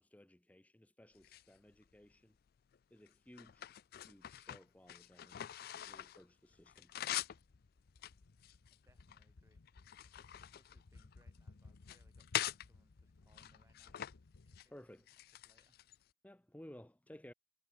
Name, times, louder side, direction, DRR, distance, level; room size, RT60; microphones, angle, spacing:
voice 1, 0.0-2.4 2.9-3.7 4.1-5.4 5.9-6.9 14.7-15.1 16.2-17.3, left 1 dB, 5° left, 0.6 m, -58 dB
sound 1, 1.1-2.1 2.7-6.2 6.5-7.4 7.9-9.2 9.7-11.4 11.8-12.7 13.3-14.1 14.4-14.7 15.1-16.0, left 12 dB, 45° left, 0.3 m, -44 dB
sound 2, 5.6-14.6, left 3 dB, 75° left, 0.7 m, -61 dB
voice 2, 8.7-9.9 10.1-10.3 10.5-14.0 14.4-15.0 15.4-15.8, right 1 dB, 15° right, 4.3 m, -74 dB
head